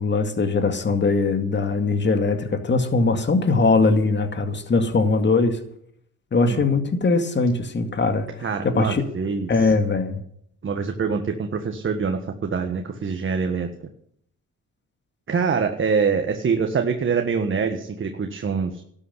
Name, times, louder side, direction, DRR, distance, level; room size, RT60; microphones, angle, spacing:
voice 1, 0.0-5.6 6.3-9.0 9.5-10.2, left 3 dB, 35° left, 8 dB, 2.2 m, -21 dB
voice 2, 8.4-9.7 10.6-13.7 15.3-18.8, right 5 dB, 40° right, 5 dB, 1.6 m, -25 dB
12.5 x 8.6 x 9.9 m, 0.67 s
cardioid pair, 90°, 30 cm